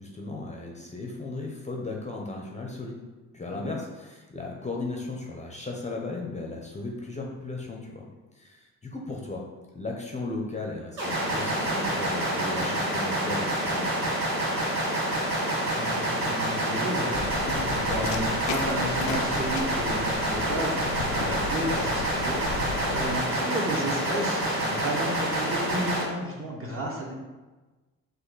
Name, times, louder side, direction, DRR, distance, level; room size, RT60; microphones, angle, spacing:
voice 1, 0.0-3.0 3.3-8.1 8.3-9.5 9.7-14.1, left 3 dB, 20° left, -1 dB, 0.7 m, -36 dB
sound 1, 11.0-26.0, right 1 dB, 85° right, 1.4 m, -27 dB
voice 2, 15.2-27.1, equal, 35° right, -2 dB, 1.3 m, -33 dB
sound 2, 17.1-23.2, left 5 dB, 85° left, 0.5 m, -36 dB
4.2 x 2.6 x 4.0 m, 1.2 s
supercardioid pair, 70°, 35 cm